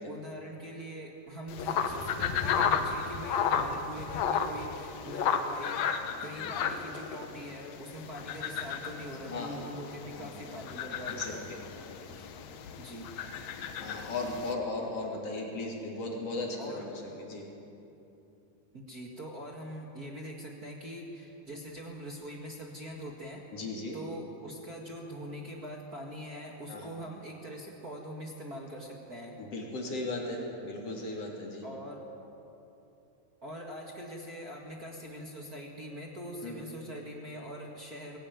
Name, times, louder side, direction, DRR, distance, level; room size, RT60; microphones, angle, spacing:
voice 1, 0.0-5.8 6.2-11.5 12.1-12.3 12.7-13.1 16.6-16.9 18.7-23.4 23.9-29.4 31.6-32.1 33.4-38.2, equal, 45° right, -1 dB, 1.2 m, -43 dB
sound 1, 1.5-14.5, left 7 dB, 85° left, 1.5 m, -33 dB
voice 2, 9.3-9.7 10.1-10.4 11.1-11.6 13.8-17.5 23.5-24.0 26.7-26.9 29.4-31.7 36.4-36.7, left 2 dB, 40° left, -1 dB, 3.8 m, -37 dB
21.0 x 17.0 x 9.2 m, 2.9 s
omnidirectional pair, 4.7 m